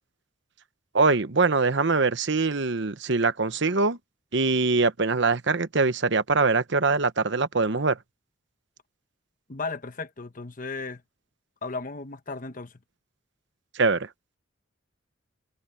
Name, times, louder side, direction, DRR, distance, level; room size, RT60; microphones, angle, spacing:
voice 1, 0.9-4.0 4.3-8.0 13.7-14.1, right 3 dB, 60° right, 1.0 m, -23 dB
voice 2, 9.5-11.0 11.6-12.8, left 3 dB, 45° left, 1.0 m, -35 dB
head